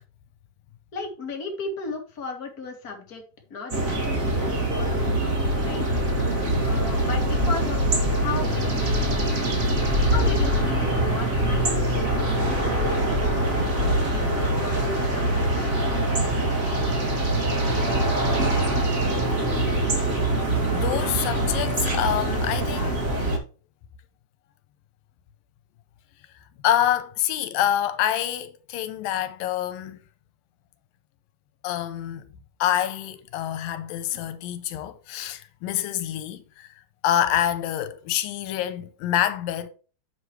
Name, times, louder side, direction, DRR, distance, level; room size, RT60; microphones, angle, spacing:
voice 1, 0.9-3.2 3.5-3.9 4.2-5.9 6.6-9.5 10.1-13.7 14.0-15.7, left 3 dB, 30° left, 2.5 m, -36 dB
sound 1, 3.7-23.4, right 1 dB, 25° right, 2.3 m, -23 dB
voice 2, 20.7-23.0 26.6-30.0 31.6-32.2 32.6-36.7 37.0-39.7, left 11 dB, 90° left, 2.6 m, -26 dB
9.7 x 7.4 x 3.2 m
omnidirectional pair, 4.0 m